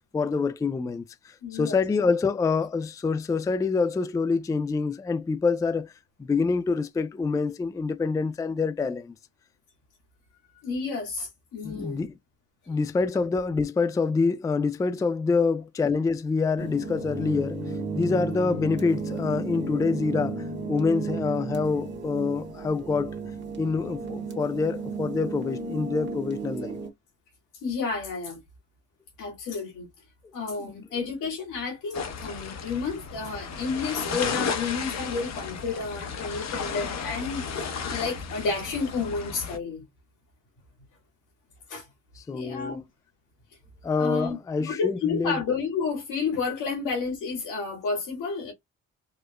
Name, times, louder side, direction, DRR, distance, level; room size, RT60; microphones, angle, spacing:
voice 1, 0.0-5.9 6.2-9.1 11.6-12.1 12.7-17.6 18.0-20.4 20.7-23.2 23.6-26.8 30.6-30.7 42.3-42.8 43.8-45.3, left 4 dB, 10° left, 0.3 m, -26 dB
voice 2, 1.4-1.8 10.6-12.1 12.7-12.8 27.6-28.4 29.2-29.9 30.3-39.8 41.7-41.9 42.3-42.8 44.0-44.4 44.7-48.5, left 4 dB, 85° left, 2.2 m, -31 dB
sound 1, 16.6-26.9, right 3 dB, 35° right, 1.2 m, -33 dB
sound 2, 31.9-39.6, left 6 dB, 60° left, 1.0 m, -33 dB
4.9 x 2.0 x 2.3 m
cardioid pair, 90°, 30 cm